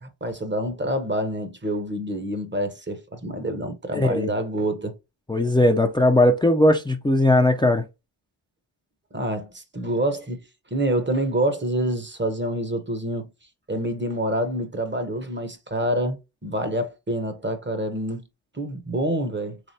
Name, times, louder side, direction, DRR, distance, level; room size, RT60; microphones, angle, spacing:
voice 1, 0.0-4.9 9.1-10.4 10.7-13.3 13.7-18.2 18.5-19.6, right 1 dB, 25° right, 0.8 m, -27 dB
voice 2, 3.9-4.3 5.3-7.8, left 1 dB, 10° left, 0.4 m, -19 dB
3.4 x 3.3 x 2.7 m
cardioid pair, 65°, 50 cm